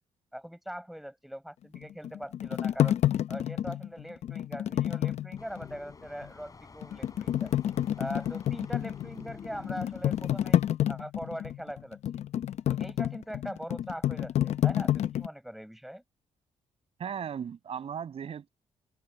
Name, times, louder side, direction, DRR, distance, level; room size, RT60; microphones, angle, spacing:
voice 1, 0.3-3.0 3.3-7.5 8.0-10.6 10.9-12.2 12.7-16.0, equal, ahead, 6.9 m, -41 dB
sound 1, 1.7-5.8 6.2-6.3 6.8-15.3, left 11 dB, 65° left, 0.6 m, -29 dB
sound 2, 5.4-10.6, left 4 dB, 30° left, 6.8 m, -50 dB
voice 2, 17.0-18.5, right 8 dB, 55° right, 6.3 m, -36 dB
cardioid pair, 115°, 12 cm